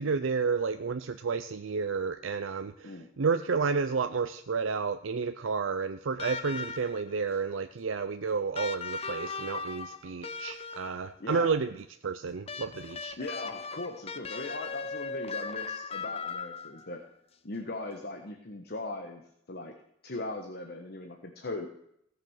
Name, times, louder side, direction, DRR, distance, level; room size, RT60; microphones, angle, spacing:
voice 1, 0.0-11.8 12.0-13.2, right 5 dB, 90° right, 8 dB, 0.6 m, -31 dB
sound 1, 6.2-7.1 8.5-11.1 12.5-16.9 18.3-18.4, left 4 dB, 30° left, 0.8 m, -38 dB
voice 2, 11.2-11.5 13.2-17.0 17.4-19.2 19.5-19.7 20.0-21.7, left 2 dB, 55° left, 5 dB, 1.4 m, -39 dB
16.5 x 6.7 x 6.5 m, 0.73 s
head